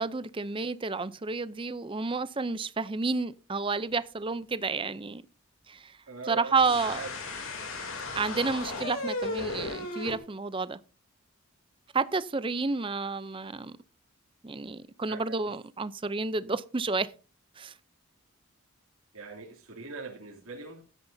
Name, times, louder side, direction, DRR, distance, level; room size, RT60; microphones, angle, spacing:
voice 1, 0.0-5.2 5.7-6.0 6.3-7.0 8.1-10.8 11.9-13.8 14.4-17.1 17.6-17.7, right 4 dB, 25° right, 0.5 m, -30 dB
voice 2, 6.1-6.5 6.9-7.1 8.5-8.6 15.1-15.6 19.1-20.8, right 4 dB, 85° right, 2.8 m, -41 dB
sound 1, 6.6-10.2, left 2 dB, 65° left, 3.0 m, -35 dB
15.5 x 12.5 x 2.7 m
head